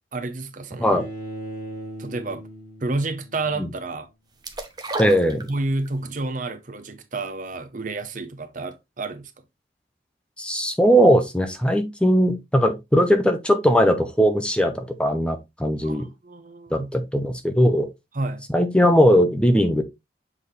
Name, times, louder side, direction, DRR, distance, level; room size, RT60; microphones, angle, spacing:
voice 1, 0.1-1.0 2.0-2.4 2.8-4.1 5.5-9.3 15.8-16.9 18.1-18.5, right 2 dB, 45° right, 0.8 m, -30 dB
Bowed string instrument, 0.9-3.9, right 1 dB, 40° left, 3.4 m, -38 dB
sound 1, 4.4-6.0 6.3-6.4, right 3 dB, 20° right, 0.9 m, -33 dB
voice 2, 5.0-5.5 10.4-16.1 16.7-17.9 18.5-19.8, equal, 5° left, 0.7 m, -19 dB
7.3 x 4.2 x 3.2 m
head